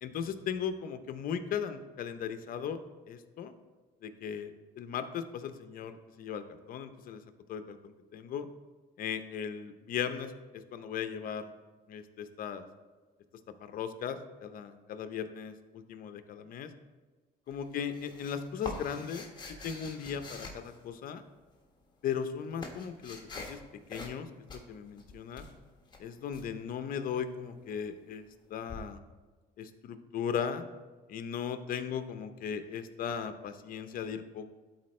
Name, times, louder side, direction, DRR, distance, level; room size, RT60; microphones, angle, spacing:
voice 1, 0.0-2.8 3.1-3.5 4.0-7.2 7.5-8.5 9.0-11.5 11.9-12.6 13.6-16.7 17.5-21.2 22.0-23.6 23.9-25.5 26.0-29.0 29.6-30.6 31.1-34.5, left 7 dB, 55° left, 9 dB, 0.7 m, -37 dB
Lid of wooden box slipped open and closed, 17.5-21.3 22.0-23.6 23.9-24.2 24.5-26.5 28.7-28.8, left 2 dB, 25° left, 1.3 m, -45 dB
12.0 x 4.3 x 3.2 m, 1.3 s
cardioid pair, 110°, 17 cm